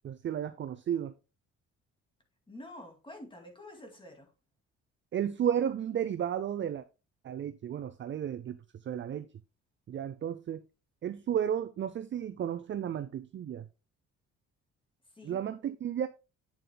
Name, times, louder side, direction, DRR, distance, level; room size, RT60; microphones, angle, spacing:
voice 1, 0.0-1.1 5.1-6.8 7.2-9.3 9.9-10.6 11.0-13.7 15.2-16.1, right 9 dB, 40° right, 0.5 m, -33 dB
voice 2, 2.5-4.3 15.1-15.4, left 1 dB, 15° left, 2.3 m, -48 dB
8.5 x 7.3 x 2.2 m
cardioid pair, 90°, 30 cm